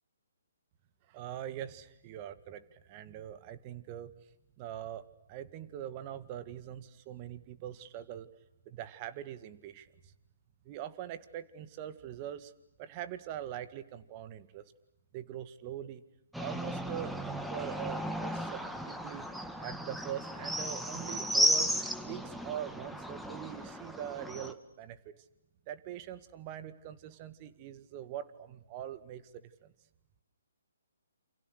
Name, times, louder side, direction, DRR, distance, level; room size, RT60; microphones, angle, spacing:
voice 1, 1.1-4.1 4.6-5.0 5.3-8.3 8.7-9.9 10.6-12.5 12.8-14.6 15.1-16.0 16.4-18.6 18.9-19.3 19.6-21.8 22.0-25.0 25.7-29.7, right 11 dB, 30° right, 14 dB, 1.9 m, -42 dB
sound 1, 16.3-24.5, equal, ahead, 1.7 m, -34 dB
29.0 x 28.0 x 6.6 m, 0.86 s
figure-of-eight pair, 135°, 0 cm